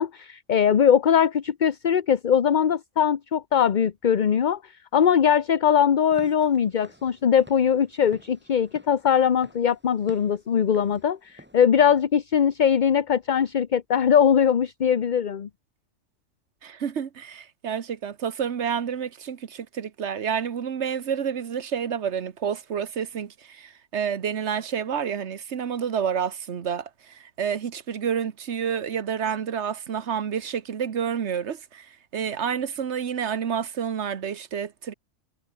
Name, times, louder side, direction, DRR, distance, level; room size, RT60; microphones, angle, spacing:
voice 1, 0.0-15.5, left 8 dB, 45° left, 0.8 m, -21 dB
Walk footsteps / Siren, 6.0-11.6, equal, 10° right, 3.1 m, -52 dB
voice 2, 16.6-34.9, right 7 dB, 65° right, 1.4 m, -29 dB
omnidirectional pair, 1.2 m